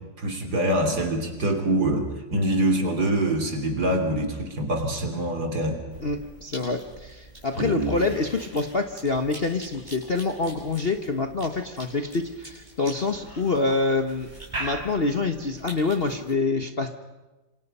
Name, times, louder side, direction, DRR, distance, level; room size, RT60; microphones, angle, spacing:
voice 1, 0.0-6.0 7.6-7.9, right 1 dB, 55° right, 4 dB, 3.7 m, -25 dB
Cough / Chewing mastication, 5.9-16.3, right 1 dB, 20° right, 7.6 m, -42 dB
voice 2, 6.0-14.3 14.6-16.9, left 3 dB, 35° left, 6 dB, 1.2 m, -26 dB
27.0 x 26.5 x 5.5 m, 1.1 s
omnidirectional pair, 2.1 m